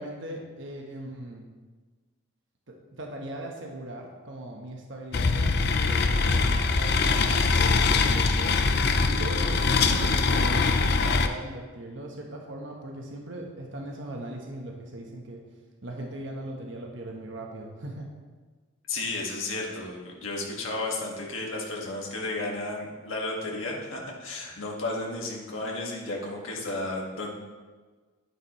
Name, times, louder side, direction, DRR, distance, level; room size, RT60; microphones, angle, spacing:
voice 1, 0.0-1.5 2.7-8.6 9.1-10.7 11.0-15.4 15.8-18.1, right 1 dB, 60° right, 1 dB, 1.1 m, -39 dB
sound 1, 5.1-11.3, left 4 dB, 50° left, 0.5 m, -23 dB
voice 2, 18.9-27.3, left 2 dB, 70° left, -2 dB, 1.7 m, -33 dB
9.7 x 9.0 x 3.1 m, 1.4 s
head